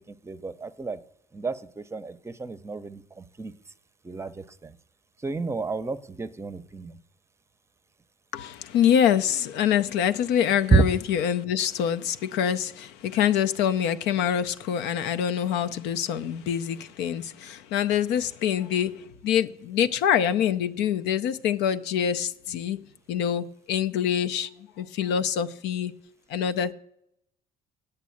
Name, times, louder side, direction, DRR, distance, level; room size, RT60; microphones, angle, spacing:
voice 1, 0.1-1.0 1.3-3.5 4.0-4.8 5.2-7.0 10.7-10.8, right 4 dB, 15° right, 0.6 m, -29 dB
voice 2, 8.3-22.8 23.1-24.5 24.8-25.9 26.3-26.7, left 9 dB, 85° left, 0.6 m, -25 dB
8.4 x 6.7 x 8.4 m
cardioid pair, 110°, 17 cm